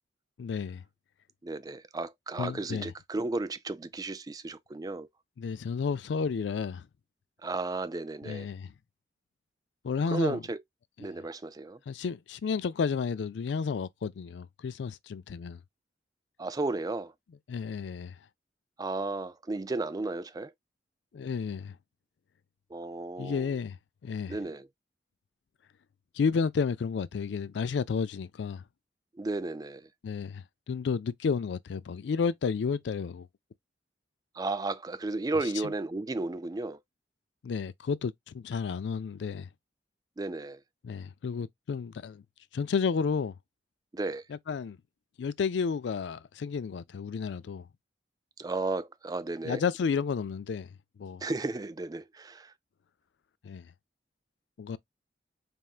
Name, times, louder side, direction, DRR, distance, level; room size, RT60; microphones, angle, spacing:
voice 1, 0.4-0.8 2.4-2.9 5.4-6.8 8.2-8.7 9.8-10.4 11.9-15.6 17.5-18.1 21.1-21.7 23.2-23.8 24.0-24.4 26.2-28.6 30.0-33.3 37.4-39.5 40.8-42.2 42.5-43.3 44.3-44.8 45.2-47.6 49.4-50.7 51.0-51.2 53.4-53.6 54.6-54.8, left 5 dB, 75° left, 0.4 m, -31 dB
voice 2, 1.4-5.1 7.4-8.5 10.1-10.6 11.0-11.8 16.4-17.1 18.8-20.5 22.7-23.5 24.3-24.7 29.2-29.9 34.3-36.8 40.2-40.6 43.9-44.2 48.4-49.6 51.2-52.5, right 2 dB, 20° right, 0.4 m, -34 dB
4.3 x 3.5 x 2.4 m
head